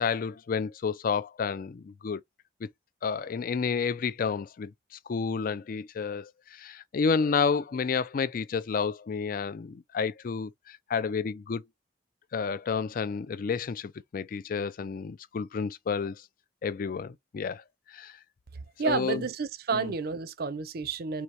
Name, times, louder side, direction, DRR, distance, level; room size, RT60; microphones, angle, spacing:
voice 1, 0.0-2.2 2.6-2.7 3.0-4.7 5.1-11.6 12.3-16.2 16.6-17.6 17.9-18.1 18.8-19.2 19.7-19.9, left 5 dB, 50° left, 0.4 m, -30 dB
voice 2, 18.8-21.2, right 5 dB, 60° right, 0.5 m, -30 dB
4.6 x 3.0 x 2.7 m
head